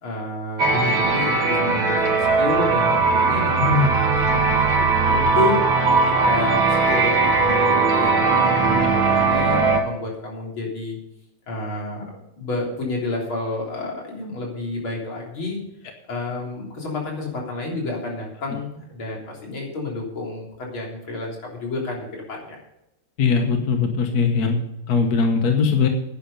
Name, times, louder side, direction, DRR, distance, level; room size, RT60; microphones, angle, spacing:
voice 1, 0.0-2.1 2.4-4.7 5.0-5.8 6.2-11.0 11.5-15.6 16.1-22.6, left 2 dB, 70° left, -1 dB, 4.3 m, -30 dB
sound 1, 0.6-9.8, right 4 dB, 65° right, 2.7 m, -19 dB
voice 2, 23.2-24.6 24.9-25.9, left 5 dB, 50° left, 5 dB, 1.6 m, -20 dB
11.0 x 10.5 x 5.4 m, 0.86 s
omnidirectional pair, 2.4 m